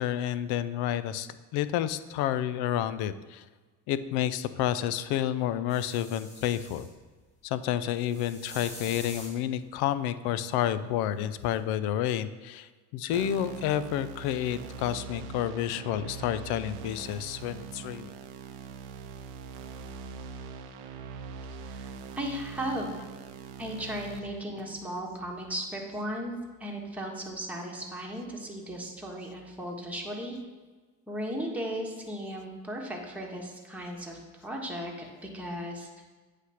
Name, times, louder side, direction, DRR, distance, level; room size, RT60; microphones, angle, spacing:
voice 1, 0.0-3.4 3.9-6.9 7.4-18.1, left 11 dB, 85° left, 14 dB, 0.5 m, -30 dB
sound 1, 5.7-6.9 8.0-9.4 11.5-11.6, left 1 dB, 20° left, 1.9 m, -45 dB
sound 2, 13.1-24.2, right 5 dB, 90° right, 0.6 m, -42 dB
voice 2, 21.6-23.0 23.6-26.3 26.6-30.4 31.1-35.9, equal, 5° right, -2 dB, 1.3 m, -36 dB
8.2 x 3.3 x 5.7 m, 1.3 s
cardioid pair, 95°, 37 cm